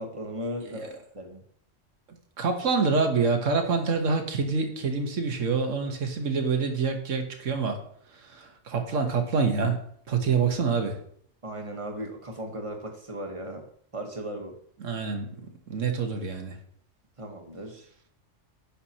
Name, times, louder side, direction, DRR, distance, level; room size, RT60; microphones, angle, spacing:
voice 1, 0.0-1.4 11.4-13.7 13.9-14.5 17.2-17.9, right 1 dB, 25° right, 3 dB, 1.2 m, -37 dB
voice 2, 2.4-7.8 8.1-9.8 10.1-11.0 14.8-15.3 15.7-16.5, right 5 dB, 85° right, 4 dB, 1.5 m, -26 dB
9.9 x 5.8 x 2.8 m, 0.63 s
omnidirectional pair, 1.3 m